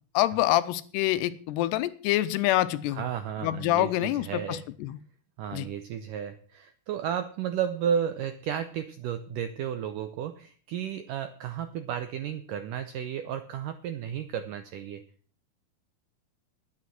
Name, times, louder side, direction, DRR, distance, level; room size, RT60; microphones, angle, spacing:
voice 1, 0.1-3.1 3.4-5.0 5.5-5.7, left 15 dB, 85° left, 14 dB, 2.9 m, -26 dB
voice 2, 3.0-4.6 5.4-15.0, right 8 dB, 80° right, 9 dB, 1.9 m, -33 dB
11.0 x 9.7 x 7.6 m, 0.44 s
omnidirectional pair, 4.8 m